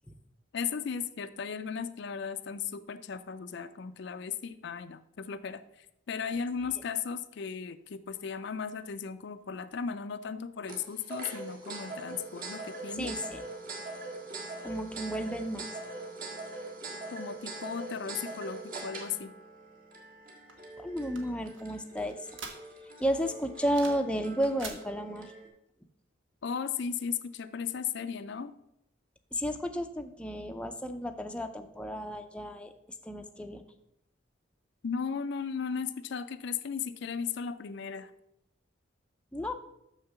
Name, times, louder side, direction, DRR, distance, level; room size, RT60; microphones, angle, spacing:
voice 1, 0.5-13.1 17.1-19.3 26.4-28.5 34.8-38.1, left 6 dB, 60° left, 11 dB, 0.4 m, -36 dB
sound 1, 10.7-25.5, right 2 dB, 45° right, 1.7 m, -42 dB
voice 2, 12.9-13.4 14.6-15.7 20.8-22.2 23.0-25.3 29.3-32.7 33.0-33.6 39.3-39.5, equal, 5° left, 5 dB, 0.5 m, -32 dB
sound 2, 20.5-23.0 23.3-24.1 24.3-24.8, right 4 dB, 75° right, 1.3 m, -45 dB
6.6 x 6.4 x 5.8 m, 0.81 s
head